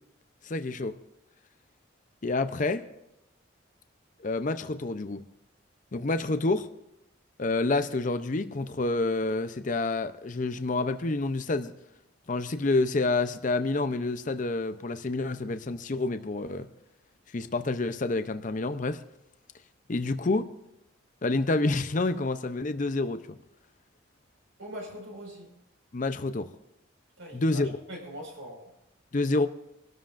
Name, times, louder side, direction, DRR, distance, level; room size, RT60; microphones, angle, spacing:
voice 1, 0.4-1.0 2.2-2.8 4.2-5.2 5.9-6.7 7.4-11.7 12.3-16.7 17.3-19.0 19.9-20.4 21.2-23.2 25.9-26.5 27.3-27.7 29.1-29.5, left 2 dB, 40° left, 10 dB, 0.6 m, -28 dB
voice 2, 24.6-25.5 27.2-28.6, equal, 75° right, 0 dB, 5.1 m, -42 dB
26.0 x 13.0 x 2.5 m, 0.85 s
head